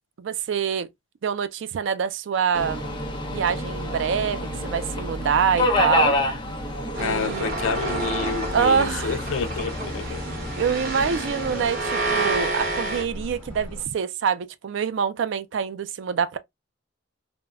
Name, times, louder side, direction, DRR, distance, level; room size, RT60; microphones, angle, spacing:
voice 1, 0.2-0.9 1.2-2.8 3.3-6.2 7.0-7.5 8.5-9.2 10.6-16.4, right 7 dB, 65° right, 0.4 m, -25 dB
Subway metro underground, 2.5-11.7, left 1 dB, 25° left, 0.6 m, -28 dB
sound 1, 6.9-13.0, right 2 dB, 45° right, 1.0 m, -29 dB
voice 2, 7.0-10.2, left 5 dB, 85° left, 0.4 m, -29 dB
sound 2, 7.4-13.8, left 1 dB, 10° left, 1.0 m, -39 dB
3.3 x 2.1 x 2.3 m
head